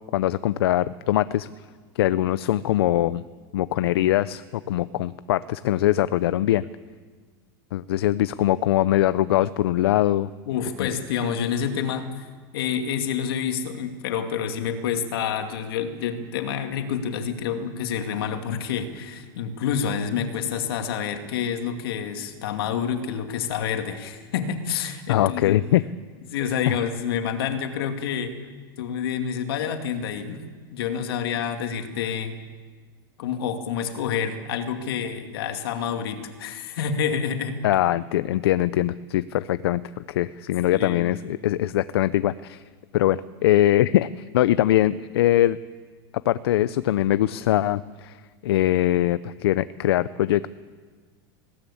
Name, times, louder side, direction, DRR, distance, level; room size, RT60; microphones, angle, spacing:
voice 1, 0.1-1.5 2.0-3.2 3.5-6.7 7.7-10.3 10.8-10.9 25.1-25.8 26.7-26.8 37.6-42.6 42.9-45.6 46.3-48.2 48.4-50.5, left 13 dB, 90° left, 15 dB, 0.6 m, -22 dB
voice 2, 10.5-12.3 12.5-25.6 26.3-28.3 28.8-30.4 30.7-32.3 33.2-37.6 40.7-41.1, left 7 dB, 70° left, 6 dB, 2.4 m, -28 dB
20.5 x 17.0 x 8.6 m, 1.5 s
supercardioid pair, 175°, 13 cm